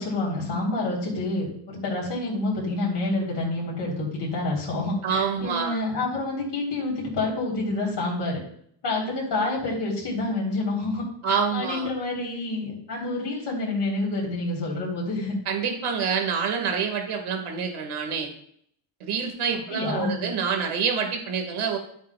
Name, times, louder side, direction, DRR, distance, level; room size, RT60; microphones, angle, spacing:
voice 1, 0.0-8.4 8.8-15.3 19.7-20.2, left 2 dB, 55° left, -4 dB, 3.5 m, -28 dB
voice 2, 5.0-5.8 11.2-11.9 15.5-18.3 19.0-21.8, right 6 dB, 75° right, 4 dB, 2.0 m, -27 dB
13.0 x 7.5 x 2.3 m, 0.66 s
wide cardioid pair, 165°, 50 cm